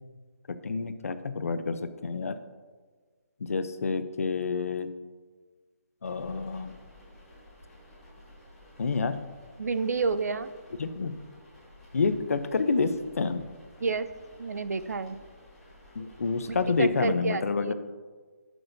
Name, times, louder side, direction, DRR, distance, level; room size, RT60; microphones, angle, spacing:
voice 1, 0.6-2.4 3.4-4.9 6.0-6.7 8.8-9.2 10.8-11.2 11.9-13.4 15.9-17.7, left 4 dB, 65° left, 11 dB, 0.6 m, -28 dB
sound 1, 6.0-17.1, left 1 dB, 5° left, 1.2 m, -53 dB
voice 2, 9.6-10.5 13.8-14.1 14.4-15.2 16.5-17.7, right 4 dB, 90° right, 13 dB, 0.5 m, -29 dB
14.0 x 6.2 x 2.6 m, 1.4 s
hypercardioid pair, 180°, 8 cm